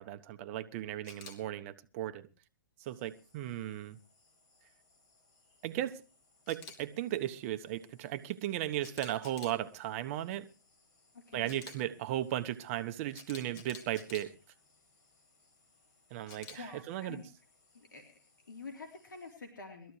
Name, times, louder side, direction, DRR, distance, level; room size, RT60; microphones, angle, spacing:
voice 1, 0.0-2.3 2.8-4.0 5.6-6.0 6.5-10.4 11.3-14.3 16.1-17.2, right 13 dB, 40° right, 1.1 m, -36 dB
Camera, 1.0-1.3 6.5-6.8 8.8-9.6 11.4-11.7 13.1-14.2 16.3-16.6, left 6 dB, 35° left, 3.4 m, -49 dB
sound 1, 2.8-19.4, left 3 dB, 60° left, 7.4 m, -70 dB
voice 2, 11.1-11.6 16.6-17.2 17.7-18.0 18.5-20.0, left 4 dB, 80° left, 3.6 m, -47 dB
21.5 x 14.0 x 3.2 m
hypercardioid pair, 125°, 11 cm